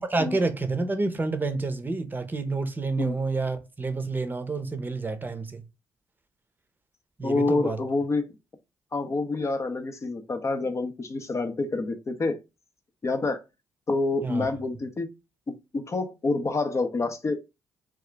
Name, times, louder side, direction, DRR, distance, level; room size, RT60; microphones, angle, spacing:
voice 1, 0.0-5.6 7.2-7.8 14.2-14.5, right 3 dB, 25° right, 0.7 m, -29 dB
voice 2, 7.2-8.2 8.9-12.4 13.0-13.4 13.9-15.1 15.5-17.4, left 3 dB, 35° left, 0.7 m, -27 dB
2.8 x 2.4 x 3.3 m
hypercardioid pair, 45°, 8 cm